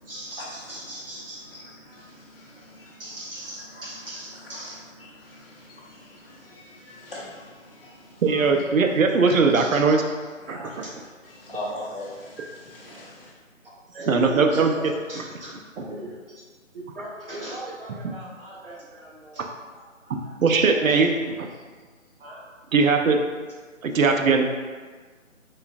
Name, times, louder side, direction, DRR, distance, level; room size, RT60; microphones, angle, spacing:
voice 1, 0.0-2.1 2.6-5.1 9.5-10.3 10.8-10.9 11.4-11.5 13.6-16.4 16.7-21.1 21.5-21.6 22.2-22.4, right 1 dB, 45° right, -6 dB, 0.9 m, -40 dB
voice 2, 1.9-3.0 5.2-8.4 9.2-9.4 10.4-10.8 11.4-13.3, left 1 dB, 45° left, -5 dB, 0.8 m, -40 dB
voice 3, 8.2-10.0 10.5-10.6 14.1-14.7 20.1-21.1 22.7-23.2 23.8-24.5, right 4 dB, 80° right, 3 dB, 0.5 m, -19 dB
3.7 x 2.3 x 2.5 m, 1.5 s
figure-of-eight pair, 160°, 40 cm